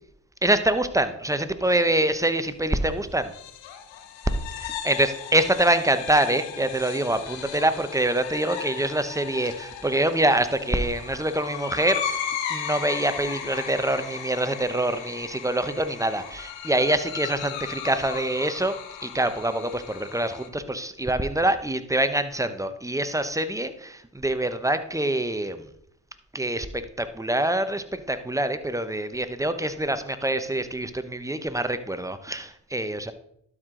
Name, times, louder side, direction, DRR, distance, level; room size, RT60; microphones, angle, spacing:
voice 1, 0.4-3.3 4.6-18.8 19.0-25.7 26.3-33.1, right 1 dB, 5° right, 10 dB, 0.8 m, -25 dB
sound 1, 3.2-20.5, left 8 dB, 85° left, 0.9 m, -36 dB
12.0 x 4.9 x 3.8 m, 0.71 s
supercardioid pair, 50°, 44 cm